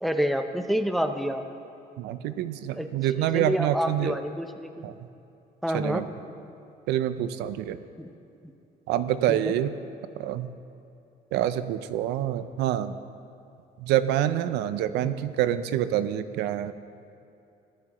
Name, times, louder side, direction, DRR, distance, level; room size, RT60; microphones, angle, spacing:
voice 1, 0.0-1.4 2.7-2.9 3.3-4.9 5.6-6.0 8.0-8.1 9.3-9.4 15.1-15.2, equal, ahead, 6 dB, 0.5 m, -28 dB
voice 2, 2.0-4.2 4.8-4.9 5.7-6.1 6.9-7.8 8.9-9.7 10.2-10.5 11.3-13.0 13.8-16.7, right 12 dB, 85° right, 12 dB, 0.4 m, -26 dB
13.5 x 9.8 x 2.9 m, 2.7 s
cardioid pair, 110°, 17 cm